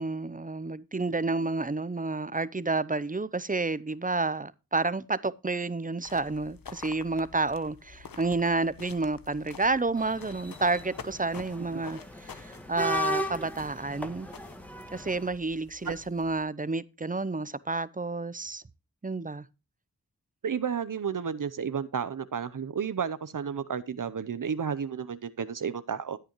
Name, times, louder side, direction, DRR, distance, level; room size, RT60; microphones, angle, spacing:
voice 1, 0.0-14.3 14.9-18.6 19.0-19.4, right 3 dB, 25° right, 0.6 m, -30 dB
sound 1, 6.0-16.4, left 6 dB, 85° left, 1.0 m, -48 dB
sound 2, 10.0-15.3, left 1 dB, 5° left, 1.6 m, -36 dB
voice 2, 20.4-26.2, right 7 dB, 65° right, 0.7 m, -32 dB
13.0 x 9.1 x 3.0 m
wide cardioid pair, 60°, 34 cm